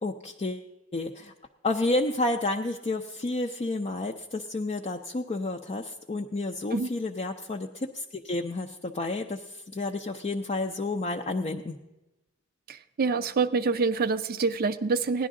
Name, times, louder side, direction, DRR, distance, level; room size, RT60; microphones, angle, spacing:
voice 1, 0.0-1.3 1.6-11.8, left 2 dB, 30° left, 3 dB, 0.5 m, -30 dB
voice 2, 12.7-15.3, right 4 dB, 45° right, 11 dB, 0.4 m, -26 dB
16.5 x 11.0 x 3.7 m, 1.0 s
head